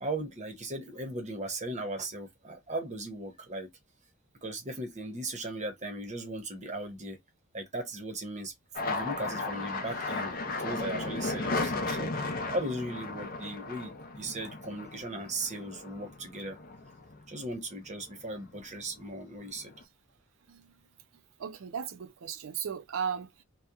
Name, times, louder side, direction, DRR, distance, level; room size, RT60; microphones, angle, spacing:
voice 1, 0.0-3.7 4.4-7.2 7.5-8.5 8.8-16.6 17.3-19.7, right 1 dB, 35° right, 0.9 m, -37 dB
sound 1, 8.7-17.5 17.9-18.6 18.9-19.8, left 3 dB, 45° left, 0.5 m, -35 dB
voice 2, 21.4-23.4, right 7 dB, 75° right, 0.5 m, -36 dB
2.8 x 2.2 x 2.3 m
head